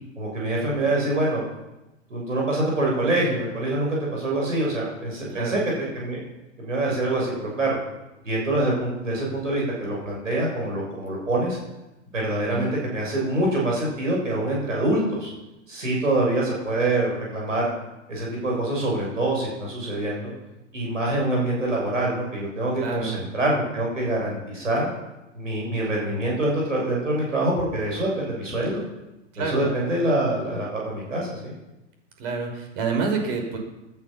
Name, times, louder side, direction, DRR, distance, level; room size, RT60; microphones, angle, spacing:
voice 1, 0.2-1.4 2.1-5.6 5.9-6.2 6.6-7.8 8.2-11.6 12.1-15.3 15.7-17.7 18.1-20.3 20.7-24.9 25.3-28.8 29.4-31.5, right 1 dB, 80° right, -2 dB, 7.5 m, -25 dB
voice 2, 5.3-5.6 12.5-12.7 22.8-23.2 29.3-29.6 32.2-33.6, right 5 dB, 50° right, 3 dB, 5.6 m, -28 dB
19.5 x 12.0 x 6.0 m, 0.99 s
figure-of-eight pair, 100°, 37 cm